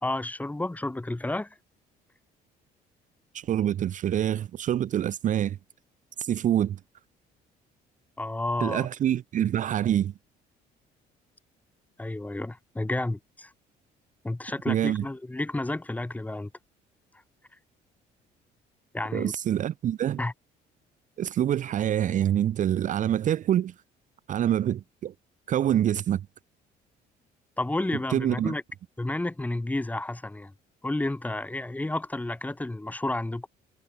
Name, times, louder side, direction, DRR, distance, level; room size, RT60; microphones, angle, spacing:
voice 1, 0.0-1.6 8.2-8.9 12.0-13.5 14.2-16.5 18.9-19.3 20.2-20.3 27.6-28.6 29.0-30.5 30.8-33.5, left 2 dB, 10° left, 2.0 m, -31 dB
voice 2, 3.3-5.6 6.2-6.8 8.6-10.1 14.7-15.0 19.1-20.2 21.2-23.7 24.3-25.1 25.5-26.2 28.1-28.5, right 11 dB, 50° right, 0.7 m, -26 dB
cardioid pair, 110°, 17 cm